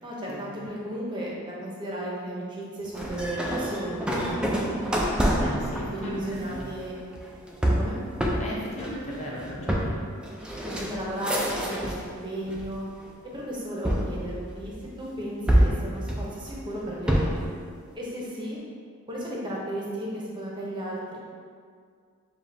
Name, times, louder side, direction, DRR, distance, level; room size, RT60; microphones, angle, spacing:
voice 1, 0.0-4.1 5.9-6.9 7.8-8.0 10.6-12.8 13.3-14.7 15.0-17.5 17.9-18.6 19.1-21.2, right 1 dB, 20° right, -5 dB, 0.7 m, -34 dB
sound 1, 2.9-12.1 12.5-13.1 13.9-14.9 15.5-17.5, equal, 5° right, 0.3 m, -27 dB
voice 2, 5.4-6.7 8.4-9.9, left 1 dB, 30° left, -5 dB, 0.7 m, -37 dB
7.0 x 2.4 x 2.7 m, 2.1 s
head